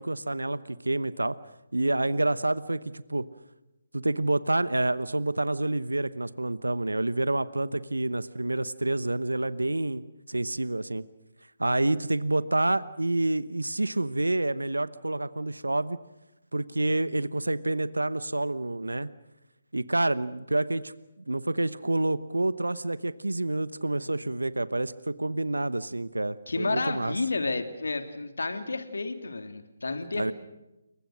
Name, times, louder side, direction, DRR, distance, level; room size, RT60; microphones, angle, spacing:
voice 1, 0.0-1.3 1.7-3.2 3.9-10.0 10.3-11.0 11.6-16.0 16.5-19.1 19.7-20.9 21.3-27.1 30.1-30.3, right 2 dB, 85° right, 16 dB, 1.0 m, -28 dB
voice 2, 26.5-30.3, left 3 dB, 70° left, 7 dB, 2.9 m, -31 dB
29.0 x 23.0 x 6.4 m, 0.98 s
figure-of-eight pair, 145°, 0 cm